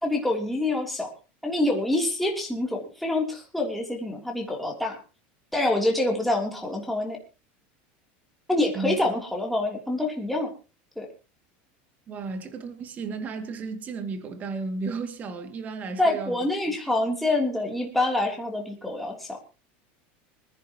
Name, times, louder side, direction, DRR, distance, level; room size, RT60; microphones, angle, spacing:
voice 1, 0.0-1.1 1.4-5.0 5.5-7.2 8.5-10.5 11.0-11.1 16.0-19.4, left 2 dB, ahead, 3.3 m, -26 dB
voice 2, 12.1-16.4, right 4 dB, 30° right, 2.4 m, -33 dB
25.0 x 10.5 x 3.0 m
supercardioid pair, 145°, 6 cm